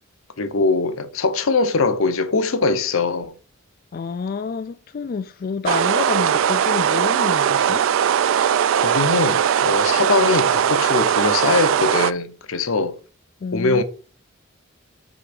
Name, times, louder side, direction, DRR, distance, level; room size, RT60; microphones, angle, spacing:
voice 1, 0.4-3.3 8.7-13.0 13.5-13.8, left 3 dB, 85° left, 0.8 m, -21 dB
voice 2, 3.9-7.9 13.4-13.8, left 5 dB, 45° left, 0.3 m, -28 dB
sound 1, 5.7-12.1, right 8 dB, 70° right, 0.3 m, -19 dB
6.1 x 3.4 x 5.2 m
head